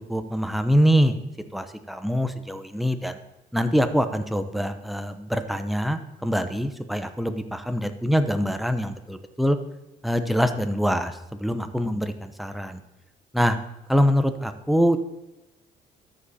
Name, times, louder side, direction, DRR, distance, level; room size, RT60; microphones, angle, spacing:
voice 1, 0.1-1.2 1.5-3.2 3.5-9.6 10.0-12.8 13.3-13.6 13.9-15.0, equal, ahead, 8 dB, 0.8 m, -24 dB
13.0 x 5.2 x 4.3 m, 0.95 s
cardioid pair, 110°, 17 cm